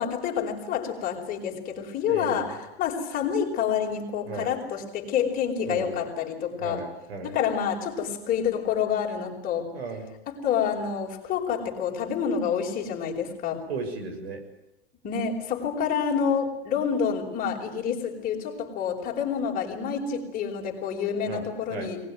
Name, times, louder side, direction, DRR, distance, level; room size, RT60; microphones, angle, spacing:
voice 1, 0.0-6.8 7.2-9.7 10.3-13.6 15.0-22.0, left 7 dB, 25° left, 0 dB, 5.0 m, -28 dB
voice 2, 2.1-2.5 4.3-4.5 5.7-6.0 6.6-7.4 9.7-10.1 13.7-14.4 21.3-21.4 21.7-21.9, right 4 dB, 80° right, 6 dB, 7.1 m, -35 dB
22.0 x 20.0 x 9.4 m, 0.91 s
supercardioid pair, 150°, 31 cm